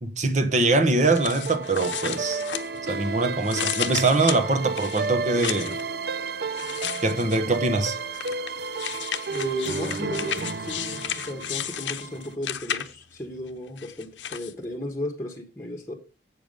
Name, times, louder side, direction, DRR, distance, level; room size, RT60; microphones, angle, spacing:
voice 1, 0.0-2.4 2.9-5.7 7.0-8.0, right 2 dB, 40° right, 1.2 m, -23 dB
sound 1, 1.0-3.1 3.4-5.8 6.5-7.6 8.1-13.1 13.8-14.5, left 10 dB, 90° left, 0.8 m, -33 dB
sound 2, 1.1-12.3, right 4 dB, 60° right, 0.5 m, -32 dB
voice 2, 9.3-15.9, left 1 dB, 15° left, 1.3 m, -35 dB
8.0 x 6.9 x 5.3 m
head